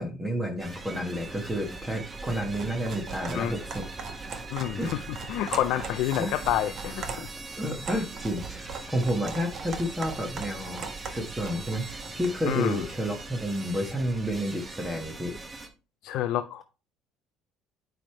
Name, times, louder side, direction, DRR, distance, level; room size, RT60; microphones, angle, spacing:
voice 1, 0.0-3.8 4.8-4.9 5.8-5.9 6.2-6.4 6.9-7.3 7.6-15.4, equal, 10° right, 1.4 m, -31 dB
sound 1, 0.6-15.7, right 3 dB, 25° right, 2.6 m, -42 dB
sound 2, 2.1-12.4, right 5 dB, 45° right, 1.4 m, -40 dB
voice 2, 4.5-7.3 12.5-12.8 16.0-16.6, left 12 dB, 70° left, 0.5 m, -28 dB
9.1 x 3.6 x 4.5 m
cardioid pair, 110°, 0 cm